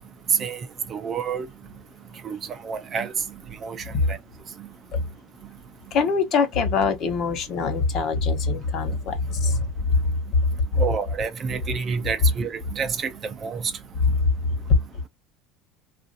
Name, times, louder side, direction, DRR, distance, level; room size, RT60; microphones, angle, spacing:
voice 1, 0.9-1.5 2.2-2.4 2.6-3.1 3.6-3.8 4.1-4.2 10.8-13.1 13.4-13.6, right 6 dB, 30° right, 0.4 m, -28 dB
voice 2, 5.9-9.7 14.0-14.2 14.7-14.8, left 4 dB, 40° left, 0.9 m, -23 dB
3.0 x 2.5 x 2.6 m
cardioid pair, 155°, 0 cm